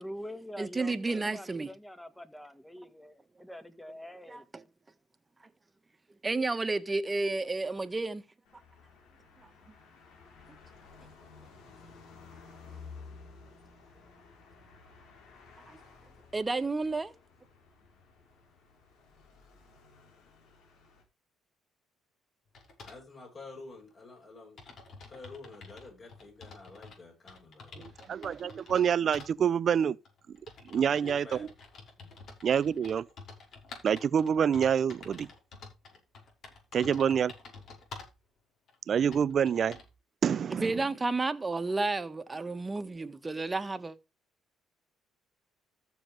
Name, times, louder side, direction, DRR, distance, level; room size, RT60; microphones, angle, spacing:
voice 1, 0.0-4.5, equal, 5° left, 1.7 m, -45 dB
voice 2, 0.6-1.7 4.3-4.6 6.2-8.2 15.7-15.8 16.3-17.1 40.5-44.0, right 3 dB, 25° right, 1.5 m, -31 dB
sound 1, 8.4-21.0, left 4 dB, 75° left, 3.9 m, -54 dB
sound 2, 22.5-23.0 23.9-24.0 24.2-24.3 24.6-27.0 27.3-28.8 29.1-29.3 30.0-38.2 38.7-38.8 39.1-39.9, left 4 dB, 60° left, 5.7 m, -49 dB
voice 3, 22.8-24.6 25.1-27.9 30.7-31.5 32.0-32.2, left 3 dB, 45° left, 7.8 m, -49 dB
voice 4, 27.8-30.0 30.7-31.5 32.4-33.1 33.8-35.3 36.7-37.3 38.9-39.8 40.2-40.7, right 8 dB, 55° right, 0.5 m, -27 dB
14.0 x 7.1 x 3.4 m
supercardioid pair, 70°, 0 cm